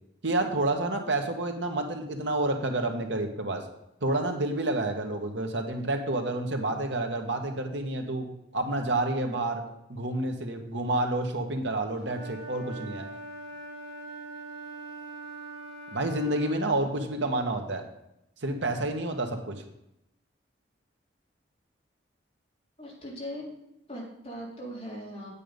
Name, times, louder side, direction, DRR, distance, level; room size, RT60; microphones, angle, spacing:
voice 1, 0.2-3.6 4.0-8.3 8.5-9.6 9.9-13.1 15.9-17.8 18.4-19.6, right 2 dB, 75° right, 4 dB, 1.6 m, -29 dB
Wind instrument woodwind instrument, 12.0-16.6, right 2 dB, 35° right, 3.0 m, -42 dB
voice 2, 22.8-23.5 23.9-25.3, equal, 30° left, -4 dB, 3.7 m, -39 dB
8.6 x 8.6 x 5.3 m, 0.82 s
head